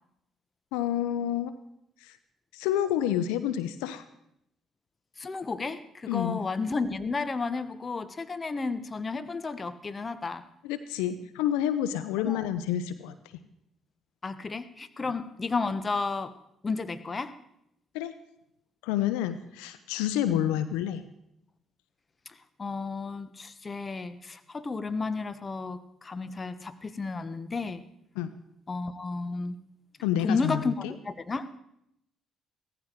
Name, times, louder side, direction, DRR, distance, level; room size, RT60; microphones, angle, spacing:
voice 1, 0.7-1.5 2.0-2.2 2.5-4.0 6.1-6.4 10.6-13.2 15.0-15.1 17.9-18.1 18.8-21.0 28.1-28.3 30.0-30.9, left 11 dB, 85° left, 12 dB, 0.7 m, -29 dB
voice 2, 5.2-10.5 12.2-12.4 14.2-16.3 16.6-17.3 20.2-20.4 22.6-27.8 28.7-29.5 30.2-31.5, left 4 dB, 35° left, 13 dB, 1.2 m, -32 dB
16.5 x 15.0 x 4.7 m, 0.78 s
hypercardioid pair, 55°, 0 cm